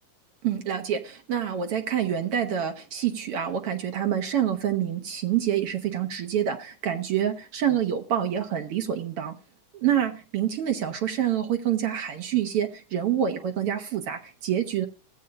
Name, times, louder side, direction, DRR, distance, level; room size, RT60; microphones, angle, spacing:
voice 1, 0.4-9.4 9.7-14.9, right 9 dB, 60° right, 1.7 m, -27 dB
17.5 x 8.3 x 2.6 m
omnidirectional pair, 3.5 m